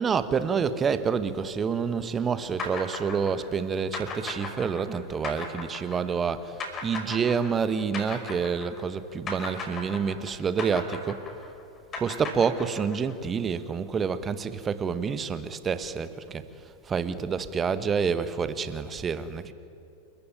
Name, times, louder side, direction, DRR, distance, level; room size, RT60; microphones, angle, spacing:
voice 1, 0.0-11.2 12.0-19.5, right 6 dB, 20° right, 1.2 m, -28 dB
sound 1, 2.6-9.0 9.3-13.1, left 3 dB, 25° left, 5.6 m, -36 dB
29.0 x 14.0 x 9.4 m
figure-of-eight pair, 90°, 0 cm